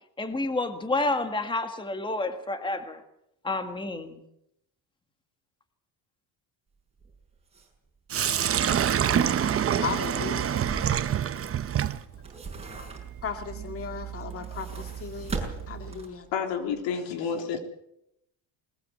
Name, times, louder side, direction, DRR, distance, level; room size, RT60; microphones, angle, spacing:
voice 1, 0.2-3.0 3.4-4.2, left 2 dB, 10° left, 7 dB, 1.8 m, -29 dB
sound 1, 7.0-7.1 7.5-7.6 8.6-11.6 12.0-13.4 14.2-16.3 16.7-16.8, right 3 dB, 15° right, 6.1 m, -39 dB
Sink (filling or washing), 8.1-16.0, right 9 dB, 30° right, 1.0 m, -28 dB
voice 2, 9.7-10.7 12.7-12.9 13.2-15.4 15.7-16.3, left 6 dB, 30° left, 6 dB, 2.1 m, -36 dB
voice 3, 16.3-17.6, left 6 dB, 75° left, 5 dB, 3.7 m, -29 dB
20.5 x 20.0 x 7.6 m, 0.79 s
cardioid pair, 145°, 44 cm